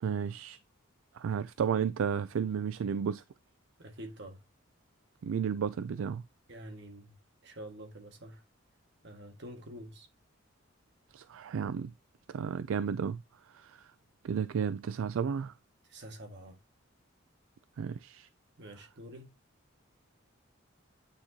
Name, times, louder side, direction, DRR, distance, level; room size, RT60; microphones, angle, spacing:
voice 1, 0.0-0.6 1.1-3.2 5.2-6.2 11.1-11.9 12.3-13.2 13.5-13.9 14.2-15.5 17.8-18.3, right 7 dB, 75° right, 0.3 m, -33 dB
voice 2, 3.8-4.4 6.5-7.2 7.4-8.4 9.0-10.1 15.9-16.6 18.6-19.3, right 1 dB, 55° right, 1.7 m, -47 dB
8.9 x 4.4 x 2.8 m
head